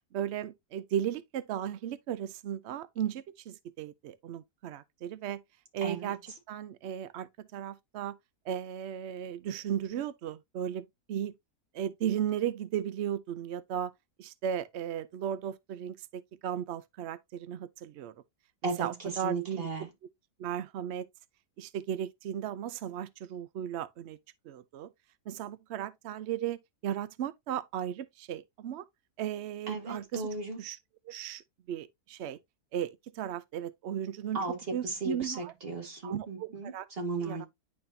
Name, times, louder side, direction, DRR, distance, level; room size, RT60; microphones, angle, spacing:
voice 1, 0.1-5.4 5.7-8.2 8.5-11.3 11.7-13.9 14.2-18.1 18.6-19.7 20.4-21.1 21.6-24.2 24.4-24.9 25.3-28.8 29.2-30.3 30.6-30.8 31.0-31.4 31.7-32.4 32.7-34.4 34.7-35.5 36.0-36.9 37.2-37.5, right 10 dB, 85° right, 0.5 m, -36 dB
voice 2, 5.8-6.1 18.6-19.9 29.7-30.6 34.3-37.5, right 3 dB, 35° right, 2.2 m, -36 dB
10.5 x 4.2 x 2.7 m
omnidirectional pair, 1.8 m